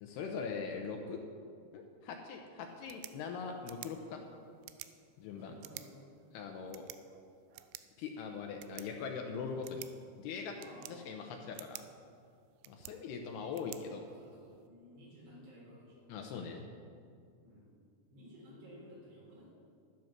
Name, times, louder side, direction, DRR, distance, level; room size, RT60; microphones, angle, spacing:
voice 1, 0.0-1.2 1.7-4.2 5.2-5.5 6.3-6.9 8.0-9.8 10.2-11.8 12.7-14.0 16.1-16.7, left 5 dB, 75° left, 3 dB, 2.6 m, -41 dB
sound 1, 2.7-14.7, right 15 dB, 85° right, 2.9 m, -54 dB
voice 2, 5.2-6.1 10.6-11.3 13.2-16.1 17.4-17.7 18.1-19.5, equal, 65° right, -5 dB, 6.3 m, -56 dB
12.5 x 11.0 x 6.0 m, 2.3 s
omnidirectional pair, 5.2 m